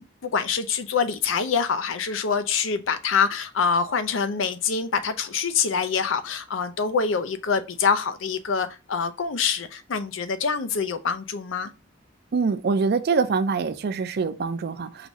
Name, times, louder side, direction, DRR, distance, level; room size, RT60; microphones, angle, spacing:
voice 1, 0.0-11.7, left 6 dB, 75° left, 0.5 m, -25 dB
voice 2, 12.3-15.1, right 5 dB, 55° right, 0.4 m, -24 dB
4.9 x 3.0 x 2.6 m
head